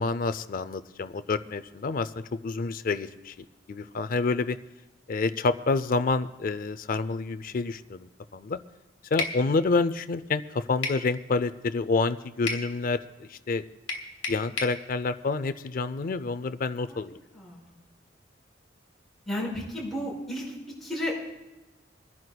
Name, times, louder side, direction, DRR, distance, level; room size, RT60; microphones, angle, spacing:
voice 1, 0.0-3.3 3.7-4.6 5.1-8.6 9.1-13.6 14.3-17.2, left 3 dB, 50° left, 12 dB, 0.5 m, -28 dB
sound 1, 9.2-9.4 10.8-11.1 12.5-12.7 13.9-14.8, left 3 dB, 80° left, 1.5 m, -31 dB
voice 2, 17.3-17.8 19.3-20.5 20.8-21.1, equal, ahead, -7 dB, 5.2 m, -33 dB
27.0 x 10.5 x 2.3 m, 1.0 s
head